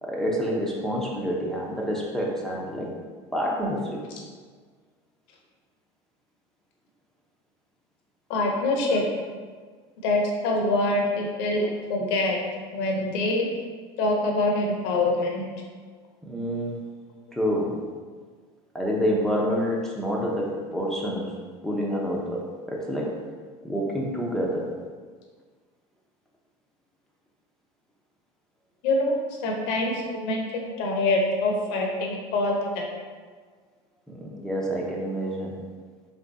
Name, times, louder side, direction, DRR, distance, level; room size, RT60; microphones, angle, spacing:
voice 1, 0.0-2.9 3.3-4.0 16.2-16.8 17.3-17.7 18.7-21.3 21.6-23.1 23.6-24.7 34.1-35.6, equal, 5° left, -3 dB, 0.7 m, -28 dB
voice 2, 8.3-9.0 10.0-12.4 12.7-13.5 14.0-15.5 28.8-29.1 29.4-30.4 30.8-32.8, left 2 dB, 75° left, 0 dB, 0.9 m, -25 dB
3.5 x 3.3 x 4.0 m, 1.5 s
supercardioid pair, 120°, 14 cm